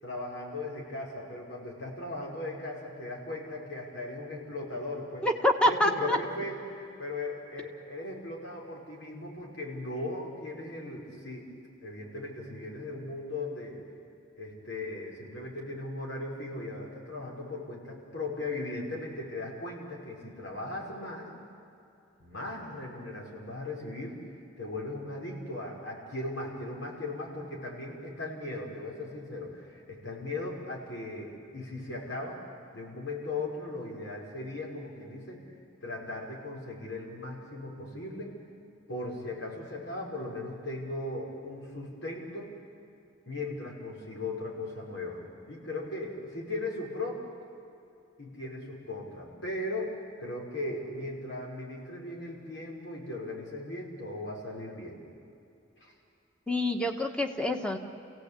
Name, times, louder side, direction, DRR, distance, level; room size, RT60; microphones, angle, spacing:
voice 1, 0.0-5.3 5.6-11.5 11.8-13.8 14.4-21.3 22.2-24.2 24.6-32.4 32.7-35.4 35.8-38.3 38.9-42.5 43.3-45.2 45.5-47.2 48.2-49.9 50.2-55.0 55.8-55.9, left 2 dB, 80° left, -2 dB, 5.7 m, -38 dB
voice 2, 5.2-6.2 56.5-57.8, left 1 dB, 5° left, 4 dB, 1.4 m, -26 dB
29.0 x 17.0 x 8.4 m, 2.7 s
head